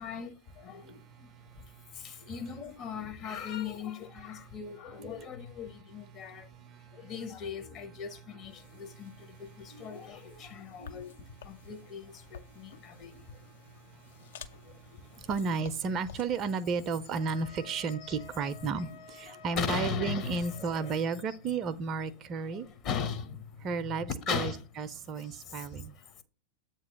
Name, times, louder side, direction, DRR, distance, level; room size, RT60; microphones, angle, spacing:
voice 1, 0.0-1.7 1.9-15.3 15.9-16.0 18.0-18.2 18.8-19.0 19.3-21.0 21.3-21.4 22.4-26.2, left 7 dB, 35° left, 0.8 m, -40 dB
voice 2, 0.8-2.3 6.1-7.1 8.6-9.8 10.5-10.7 13.7-14.3 14.7-14.8 15.1-22.7 23.6-25.9, right 5 dB, 35° right, 0.5 m, -34 dB
sound 1, 8.5-18.0, left 7 dB, 60° left, 0.5 m, -53 dB
Wind instrument woodwind instrument, 17.1-21.1, left 6 dB, 85° left, 1.2 m, -51 dB
7.8 x 2.9 x 6.0 m
figure-of-eight pair, 90°, 0 cm